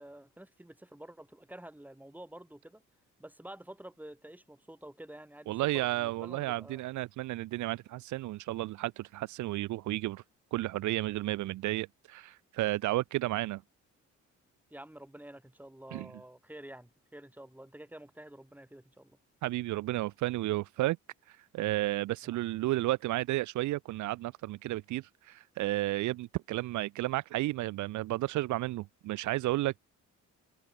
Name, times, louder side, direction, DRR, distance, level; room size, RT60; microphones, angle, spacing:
voice 1, 0.0-2.8 3.2-6.8 14.7-19.2 22.2-22.4, right 1 dB, 5° right, 3.7 m, -49 dB
voice 2, 5.5-10.2 10.5-13.6 15.9-16.1 19.4-21.0 21.3-29.8, right 17 dB, 75° right, 0.5 m, -32 dB
cardioid pair, 90°, 30 cm